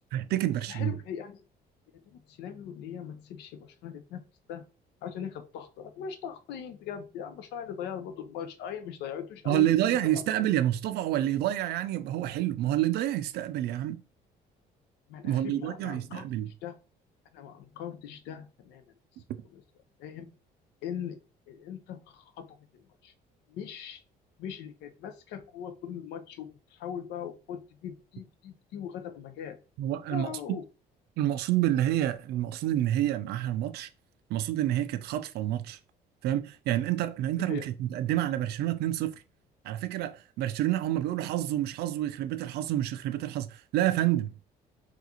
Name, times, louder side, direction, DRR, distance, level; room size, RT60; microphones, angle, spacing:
voice 1, 0.1-1.0 9.5-14.0 15.2-16.5 29.8-30.4 31.2-33.9 34.3-35.8 36.2-39.2 39.6-44.3, right 13 dB, 70° right, 0.4 m, -28 dB
voice 2, 0.7-1.4 1.9-4.2 4.5-4.7 5.0-10.3 15.1-16.3 16.6-16.8 17.3-18.8 19.5-19.6 20.0-20.3 20.8-21.2 21.5-23.1 23.5-24.0 24.4-29.6 29.9-30.6 37.4-37.6, left 8 dB, 85° left, 0.6 m, -40 dB
3.6 x 2.4 x 2.8 m
cardioid pair, 110°, 17 cm